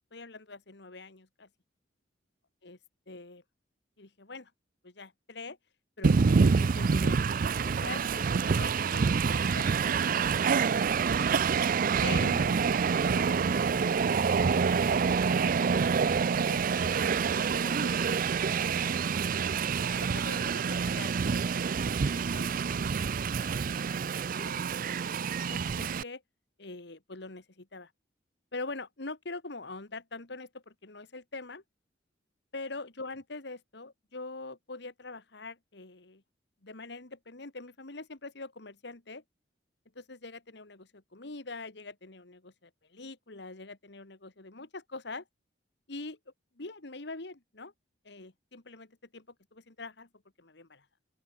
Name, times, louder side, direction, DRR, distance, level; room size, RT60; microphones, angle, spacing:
voice 1, 0.1-1.5 2.6-2.8 3.1-3.4 4.0-4.5 4.8-5.6 6.0-7.2 7.6-10.4 12.0-12.6 13.0-13.4 15.1-15.4 15.8-15.9 16.5-19.0 19.7-21.1 21.9-22.9 23.1-23.3 24.4-26.2 26.6-27.9 28.5-31.6 32.5-36.2 36.6-39.2 40.0-45.2 45.9-46.2 46.6-47.7 48.0-49.3 49.5-50.1 50.4-50.9, left 3 dB, 65° left, 1.9 m, -44 dB
Train, 6.0-26.0, right 5 dB, 50° right, 0.4 m, -27 dB
open air
head